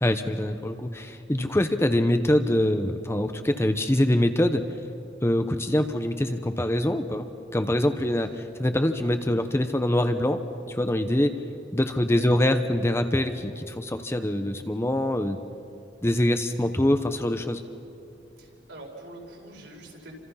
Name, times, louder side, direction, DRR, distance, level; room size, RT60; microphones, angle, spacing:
voice 1, 0.0-4.6 5.2-7.3 7.5-10.4 10.7-11.3 11.7-15.4 16.0-17.6, left 1 dB, 15° left, 8 dB, 0.8 m, -24 dB
voice 2, 18.4-20.1, right 2 dB, 65° right, -1 dB, 5.0 m, -44 dB
29.5 x 26.0 x 5.7 m, 2.7 s
head